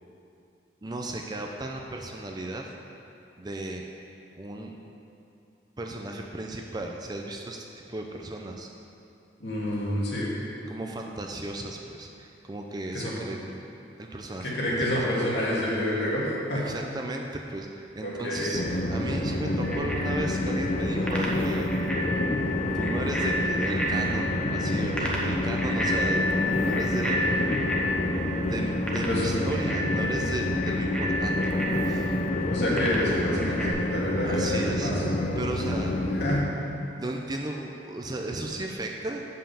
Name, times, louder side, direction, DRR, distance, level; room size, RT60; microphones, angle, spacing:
voice 1, 0.8-2.7 3.4-3.8 4.4-4.7 5.8-8.7 10.7-13.6 14.0-15.1 16.7-21.7 22.7-27.2 28.5-32.1 34.2-34.9 35.4-36.0 37.0-39.2, right 2 dB, 25° right, 1 dB, 0.5 m, -35 dB
voice 2, 9.4-10.3 12.9-13.1 14.4-16.6 18.0-18.6 29.1-29.6 32.5-35.0 36.2-36.7, left 1 dB, 75° left, -6 dB, 2.2 m, -28 dB
Train, 18.5-36.4, left 1 dB, 45° left, 0.6 m, -28 dB
Bicycle bell, 19.6-33.7, left 1 dB, 5° left, 1.1 m, -32 dB
7.5 x 5.6 x 6.8 m, 2.7 s
head